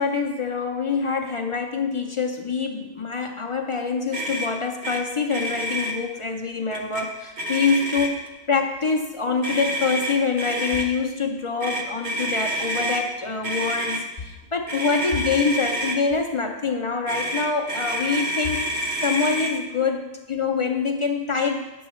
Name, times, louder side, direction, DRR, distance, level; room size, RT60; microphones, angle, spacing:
voice 1, 0.0-8.2 8.5-21.7, left 5 dB, 45° left, 3 dB, 0.4 m, -25 dB
Motor vehicle (road), 4.1-4.5 4.8-5.0 5.3-5.9 6.7-7.0 7.4-8.3 9.4-10.9 11.6-13.0 13.4-14.0 14.7-16.0 17.1-19.5, right 1 dB, 60° right, 1.1 m, -28 dB
9.4 x 7.0 x 3.0 m, 1.1 s
omnidirectional pair, 1.0 m